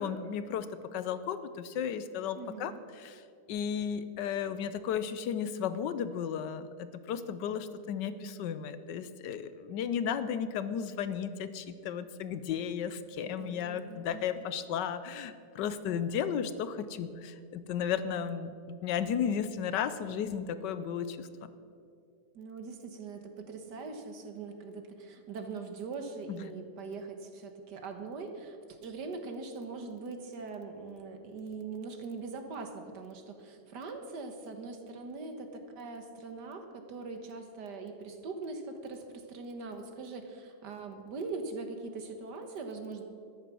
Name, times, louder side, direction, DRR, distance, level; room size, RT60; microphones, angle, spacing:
voice 1, 0.0-3.2 3.5-21.3 26.3-26.4, left 8 dB, 80° left, 13 dB, 1.3 m, -34 dB
voice 2, 2.4-2.8 13.2-14.4 22.3-43.0, right 4 dB, 70° right, 6 dB, 1.8 m, -42 dB
13.0 x 10.5 x 6.2 m, 2.3 s
omnidirectional pair, 1.9 m